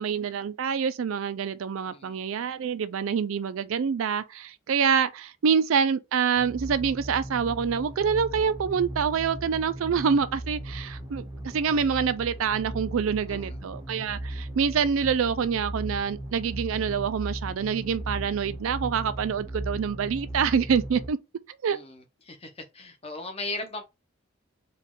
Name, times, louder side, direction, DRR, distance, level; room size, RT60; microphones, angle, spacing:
voice 1, 0.0-21.2 21.6-21.8, right 6 dB, 75° right, 0.4 m, -26 dB
sound 1, 6.4-21.1, right 1 dB, 15° right, 0.6 m, -37 dB
voice 2, 21.7-23.8, left 2 dB, 30° left, 0.8 m, -38 dB
4.1 x 2.4 x 3.6 m
head